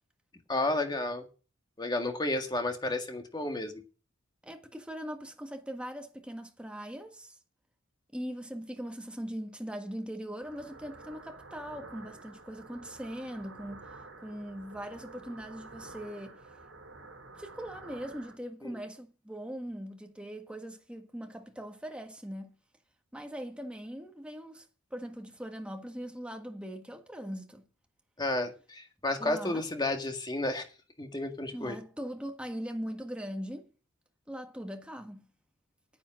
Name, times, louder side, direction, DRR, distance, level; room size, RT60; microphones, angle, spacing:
voice 1, 0.5-1.3 1.8-3.8 18.6-18.7 28.2-30.6 31.0-31.8, left 2 dB, 20° left, 1.7 m, -32 dB
voice 2, 4.4-7.4 8.1-13.9 14.2-16.4 17.4-22.5 23.1-24.6 24.9-27.6 29.2-29.7 31.5-33.7 34.3-35.2, equal, 5° right, 1.5 m, -40 dB
sound 1, 10.4-18.3, right 3 dB, 65° right, 4.5 m, -50 dB
9.8 x 8.6 x 6.4 m
head